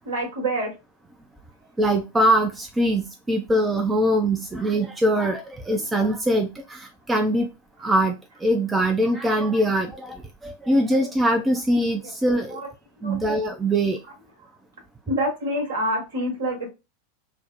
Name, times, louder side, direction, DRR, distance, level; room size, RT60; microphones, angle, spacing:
voice 1, 0.0-0.7 12.0-12.1 12.5-12.7 13.0-13.2 15.1-16.7, right 1 dB, 60° right, 0 dB, 1.3 m, -26 dB
voice 2, 1.8-7.5 7.8-12.6 13.0-14.0, right 1 dB, 10° right, 4 dB, 0.4 m, -22 dB
3.4 x 2.0 x 2.4 m, 0.25 s
figure-of-eight pair, 90°, 0 cm